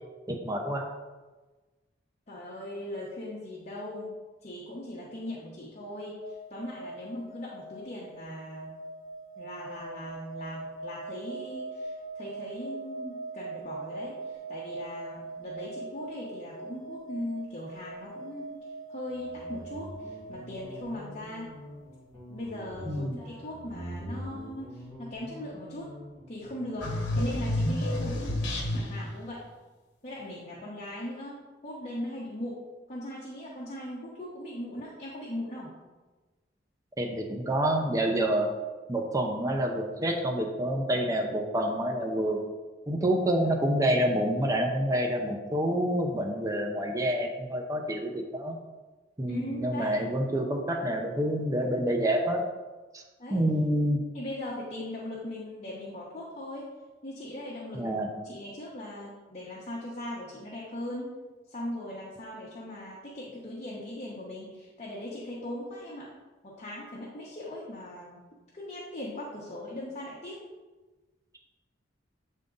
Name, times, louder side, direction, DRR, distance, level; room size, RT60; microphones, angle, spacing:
voice 1, 0.3-0.8 22.9-23.2 37.0-38.5 38.9-42.4 42.9-48.6 49.2-52.4 52.9-53.0 53.3-54.0 57.7-58.1, right 1 dB, 20° right, 2 dB, 0.6 m, -28 dB
voice 2, 2.3-8.7 9.4-21.5 22.3-26.0 26.3-28.2 28.7-29.4 30.0-35.8 49.3-50.0 53.2-53.5 54.1-56.7 57.0-61.1 61.5-66.1 66.4-68.2 68.5-70.4, left 1 dB, 40° left, -6 dB, 1.0 m, -39 dB
sound 1, 6.2-21.3 21.5-21.8, right 3 dB, 70° right, 2.2 m, -42 dB
Guitar, 19.1-27.6, equal, 10° left, 2.0 m, -44 dB
sound 2, 26.8-29.1, left 1 dB, 70° left, 1.2 m, -29 dB
8.1 x 3.7 x 3.8 m, 1.2 s
head